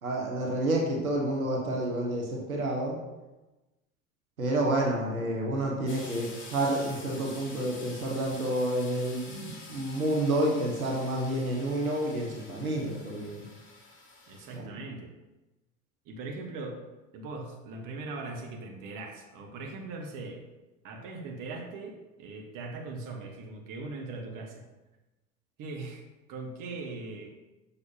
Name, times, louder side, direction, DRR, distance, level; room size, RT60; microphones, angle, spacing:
voice 1, 0.0-3.0 4.4-13.4, right 1 dB, 85° right, -1 dB, 1.2 m, -29 dB
sound 1, 5.9-14.6, left 3 dB, 30° left, 2.3 m, -48 dB
voice 2, 14.3-15.1 16.0-16.8 17.1-20.4 20.8-24.7 25.6-27.3, right 3 dB, 50° right, 1 dB, 1.5 m, -40 dB
7.0 x 6.4 x 2.9 m, 1.1 s
hypercardioid pair, 75°, 41 cm